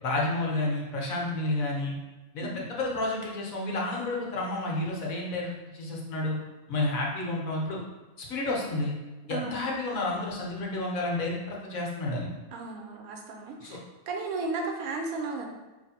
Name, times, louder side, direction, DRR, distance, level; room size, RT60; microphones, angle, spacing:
voice 1, 0.0-2.0 2.3-6.4 6.7-7.8 8.2-8.9 9.3-12.3 13.6-13.8, left 2 dB, 65° left, -2 dB, 1.2 m, -30 dB
voice 2, 9.3-9.7 12.5-13.8 14.1-15.5, right 3 dB, 75° right, 2 dB, 1.0 m, -34 dB
3.3 x 2.5 x 4.1 m, 1.1 s
omnidirectional pair, 1.6 m